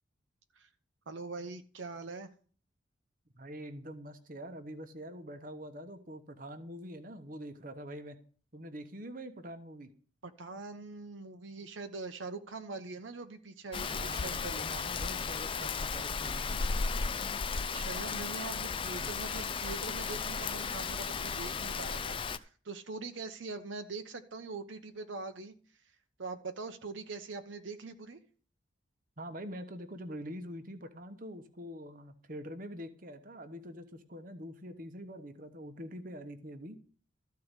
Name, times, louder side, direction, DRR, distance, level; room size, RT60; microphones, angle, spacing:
voice 1, 1.1-2.3 10.2-14.7 17.5-25.5 26.2-28.2, right 3 dB, 70° right, 8 dB, 0.9 m, -43 dB
voice 2, 3.3-8.2 8.5-9.9 13.9-16.6 29.2-36.8, equal, 45° right, 9 dB, 1.1 m, -45 dB
Rain, 13.7-22.4, left 5 dB, 25° left, 0.4 m, -35 dB
14.0 x 4.7 x 8.1 m, 0.43 s
head